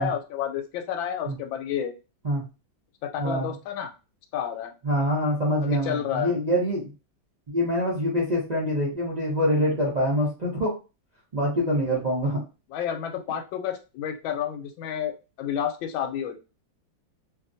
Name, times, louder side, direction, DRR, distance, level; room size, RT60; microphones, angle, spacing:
voice 1, 0.0-1.9 3.0-3.9 4.3-4.7 5.6-6.4 12.7-15.1 15.4-16.3, left 9 dB, 85° left, 5 dB, 1.4 m, -30 dB
voice 2, 3.2-3.5 4.8-6.9 7.5-10.7 11.3-12.4, equal, 65° right, -6 dB, 0.4 m, -25 dB
2.8 x 2.7 x 2.6 m, 0.30 s
omnidirectional pair, 2.1 m